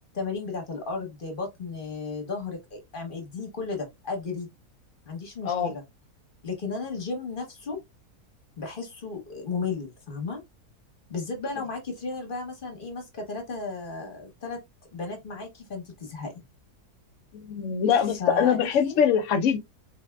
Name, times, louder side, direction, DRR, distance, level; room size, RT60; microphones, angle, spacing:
voice 1, 0.1-4.5 5.1-5.8 6.4-7.8 8.6-10.4 11.1-14.6 14.9-16.4 18.2-19.0, left 4 dB, 40° left, 1.0 m, -34 dB
voice 2, 17.4-19.6, left 7 dB, 65° left, 0.9 m, -23 dB
3.8 x 3.4 x 2.2 m
omnidirectional pair, 1.7 m